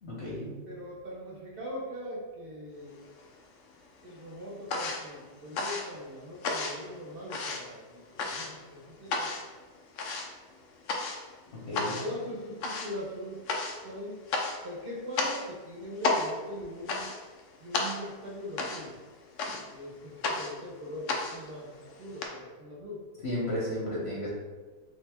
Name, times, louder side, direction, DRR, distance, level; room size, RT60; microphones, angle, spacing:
voice 1, 0.0-0.6 11.7-12.0 23.2-24.3, left 1 dB, 50° left, -5 dB, 0.9 m, -33 dB
voice 2, 0.7-3.0 4.0-9.3 11.8-13.4 13.8-14.2 14.6-17.1 17.6-19.0 19.6-23.0, left 1 dB, 50° right, -3 dB, 0.7 m, -41 dB
sound 1, 2.9-3.7 4.0-22.3, left 3 dB, 85° left, 0.6 m, -34 dB
3.4 x 2.8 x 3.4 m, 1.4 s
omnidirectional pair, 1.9 m